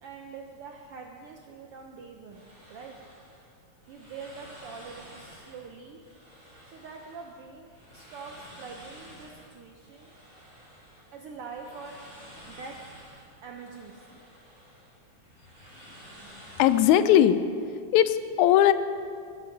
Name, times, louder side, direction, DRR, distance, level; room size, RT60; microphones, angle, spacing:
voice 1, 0.0-3.0 3.9-6.0 6.7-10.1 11.1-12.0 12.2-12.8 13.4-14.2, right 5 dB, 75° right, 2 dB, 1.3 m, -44 dB
sound 1, 2.3-17.2, equal, 30° right, 4.0 m, -51 dB
voice 2, 16.6-17.4 17.9-18.7, left 11 dB, 80° left, 13 dB, 1.9 m, -19 dB
13.5 x 10.0 x 5.8 m, 2.4 s
omnidirectional pair, 3.4 m